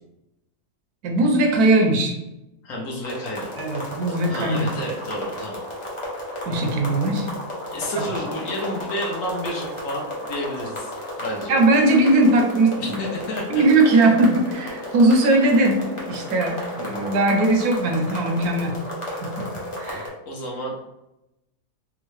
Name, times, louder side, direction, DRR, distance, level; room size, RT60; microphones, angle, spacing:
voice 1, 1.0-2.2 3.6-4.7 6.5-7.3 11.5-13.0 13.5-18.8 19.2-19.5 19.8-20.1, right 2 dB, 75° right, 3 dB, 1.1 m, -19 dB
voice 2, 2.6-3.5 4.1-5.6 7.7-11.6 12.8-13.6 13.9-14.1 14.8-14.9 20.3-20.8, equal, 65° left, -1 dB, 1.0 m, -31 dB
sound 1, 3.0-20.1, left 1 dB, 35° left, 0.5 m, -33 dB
3.6 x 2.0 x 3.1 m, 0.91 s
omnidirectional pair, 1.7 m